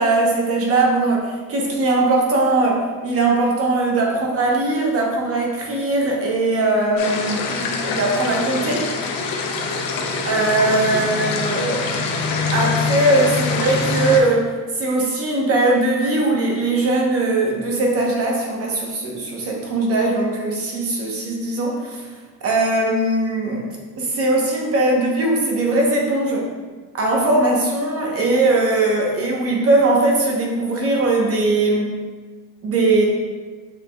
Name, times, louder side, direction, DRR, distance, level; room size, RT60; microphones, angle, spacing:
voice 1, 0.0-8.9 10.3-12.0 12.5-14.5 14.8-22.1 22.4-23.7 24.0-26.5 26.9-32.0 32.6-33.1, right 2 dB, 45° right, -1 dB, 1.0 m, -20 dB
sound 1, 7.0-14.2, left 4 dB, 85° left, 0.7 m, -24 dB
6.6 x 3.4 x 2.3 m, 1.4 s
cardioid pair, 140°, 33 cm